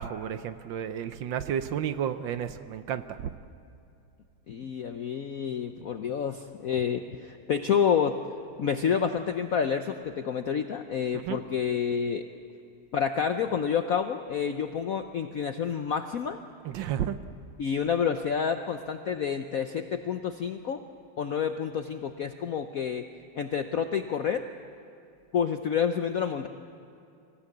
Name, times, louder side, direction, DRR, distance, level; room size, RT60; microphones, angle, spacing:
voice 1, 0.0-3.3 11.2-11.4 16.6-17.2, right 9 dB, 70° right, 11 dB, 1.3 m, -32 dB
voice 2, 4.5-8.2 8.6-12.2 12.9-16.4 17.6-20.8 21.2-23.1 23.4-24.4 25.3-26.5, left 7 dB, 70° left, 7 dB, 0.8 m, -29 dB
25.0 x 16.0 x 8.5 m, 2.7 s
omnidirectional pair, 2.4 m